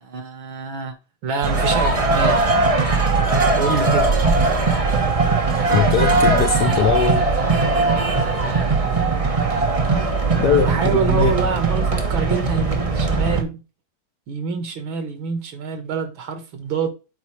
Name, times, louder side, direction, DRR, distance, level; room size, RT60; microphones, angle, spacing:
voice 1, 0.0-0.9 1.2-2.4 3.6-4.2 10.3-13.6 14.3-16.9, right 5 dB, 70° right, 2.1 m, -26 dB
sound 1, 1.4-13.4, right 3 dB, 35° right, 0.5 m, -19 dB
voice 2, 5.7-7.3 10.4-11.3, left 8 dB, 65° left, 1.0 m, -20 dB
8.2 x 4.7 x 3.1 m
omnidirectional pair, 2.3 m